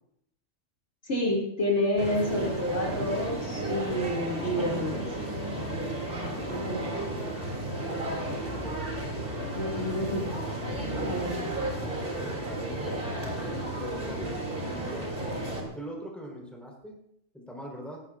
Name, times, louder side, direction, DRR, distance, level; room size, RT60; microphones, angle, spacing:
voice 1, 1.0-5.1 6.5-6.9 9.5-10.2 10.7-11.4, left 1 dB, 60° left, -3 dB, 3.0 m, -29 dB
sound 1, 2.0-15.6, right 1 dB, 45° right, 3.1 m, -33 dB
voice 2, 6.3-8.8 9.7-10.0 12.0-13.0 13.3-15.1 15.6-17.0 17.3-18.0, equal, ahead, -2 dB, 4.3 m, -44 dB
19.5 x 15.5 x 2.6 m, 0.74 s
omnidirectional pair, 1.3 m